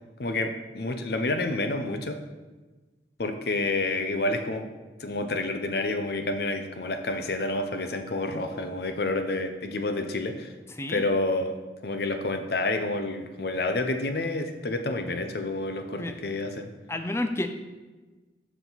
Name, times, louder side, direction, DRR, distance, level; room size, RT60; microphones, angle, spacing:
voice 1, 0.2-2.2 3.2-4.6 5.0-10.5 10.9-11.5 11.8-16.7, left 2 dB, 60° left, 7 dB, 0.6 m, -29 dB
voice 2, 16.9-17.5, left 1 dB, 15° left, 7 dB, 0.4 m, -30 dB
7.0 x 5.9 x 4.0 m, 1.2 s
head